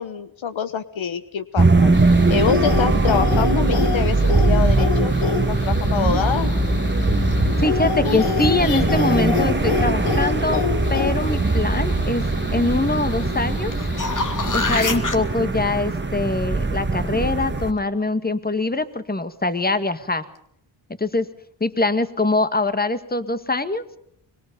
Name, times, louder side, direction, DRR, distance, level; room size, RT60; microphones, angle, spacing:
voice 1, 0.0-2.0 2.3-5.1 5.5-6.5, left 7 dB, 70° left, 12 dB, 1.4 m, -25 dB
sound 1, 1.6-17.7, right 3 dB, 20° right, 1.9 m, -21 dB
sound 2, 1.9-14.8, left 8 dB, 85° left, 2.0 m, -28 dB
voice 2, 7.6-10.6 10.9-13.7 14.5-20.3 21.0-21.3 21.6-23.8, left 2 dB, 20° left, 11 dB, 2.0 m, -23 dB
sound 3, 13.7-15.2 20.0-20.1, left 3 dB, 40° left, 2.6 m, -25 dB
24.5 x 22.5 x 5.5 m, 0.69 s
cardioid pair, 55°, 49 cm